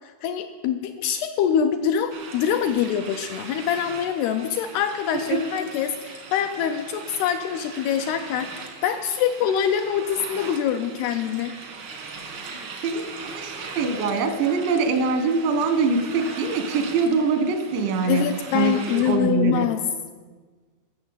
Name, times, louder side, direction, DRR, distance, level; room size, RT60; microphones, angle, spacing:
voice 1, 0.0-11.5 18.1-19.8, left 9 dB, 80° left, 7 dB, 2.4 m, -24 dB
sound 1, 2.1-19.2, right 4 dB, 70° right, 1.2 m, -40 dB
voice 2, 12.5-18.2 18.5-19.7, right 5 dB, 85° right, 8 dB, 3.6 m, -24 dB
13.5 x 6.8 x 8.1 m, 1.4 s
omnidirectional pair, 5.1 m